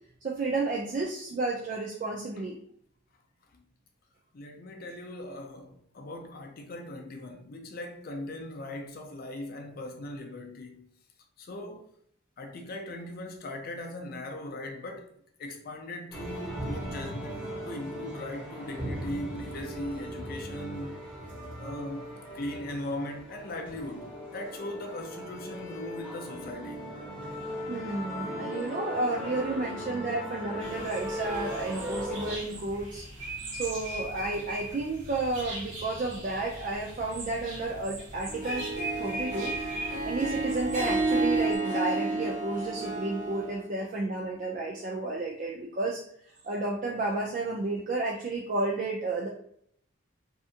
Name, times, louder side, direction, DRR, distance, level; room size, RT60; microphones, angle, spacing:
voice 1, 0.2-2.6 27.7-33.1 33.5-38.7 39.0-39.6 40.0-46.0 46.4-49.3, right 2 dB, 40° right, 0.3 m, -32 dB
voice 2, 4.3-10.9 11.4-11.9 12.4-15.1 15.4-21.0 21.6-22.1 22.3-26.9, left 1 dB, 50° left, 0.4 m, -39 dB
sound 1, 16.1-32.3, equal, 5° right, 0.9 m, -38 dB
sound 2, 30.6-41.6, right 1 dB, 65° right, 1.1 m, -40 dB
Harp, 38.3-43.6, right 3 dB, 90° right, 1.3 m, -30 dB
2.7 x 2.4 x 2.5 m
head